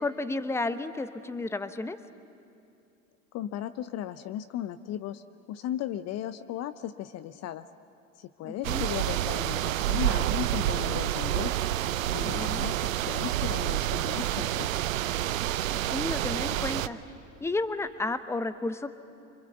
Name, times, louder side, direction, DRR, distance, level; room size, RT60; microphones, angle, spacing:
voice 1, 0.0-2.0 8.4-8.8 12.2-12.7 15.9-17.0 17.4-19.0, left 2 dB, 5° left, 12 dB, 0.9 m, -32 dB
voice 2, 3.3-5.2 5.5-7.7 8.2-11.6 12.1-14.8, left 11 dB, 40° left, 12 dB, 0.7 m, -36 dB
sound 1, 8.6-16.9, right 13 dB, 75° right, 0.7 m, -28 dB
26.5 x 25.0 x 7.9 m, 2.6 s
hypercardioid pair, 80°, 40 cm